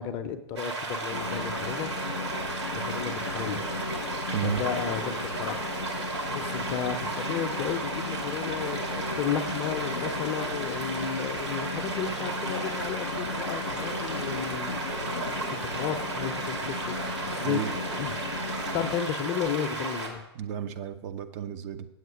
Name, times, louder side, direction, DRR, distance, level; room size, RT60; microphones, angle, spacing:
voice 1, 0.0-1.9 2.8-3.6 4.4-5.6 6.3-8.8 9.2-14.8 15.5-17.0 17.3-17.6 17.9-18.1 18.7-20.2, left 8 dB, 30° left, 9 dB, 0.7 m, -33 dB
sound 1, 0.6-20.1, right 3 dB, 75° right, 2.3 m, -34 dB
Train, 1.1-19.0, left 4 dB, 85° left, 0.7 m, -36 dB
voice 2, 17.4-17.7 20.3-21.9, right 8 dB, 35° right, 10 dB, 0.6 m, -32 dB
7.9 x 7.9 x 5.0 m, 0.93 s
figure-of-eight pair, 115°, 15 cm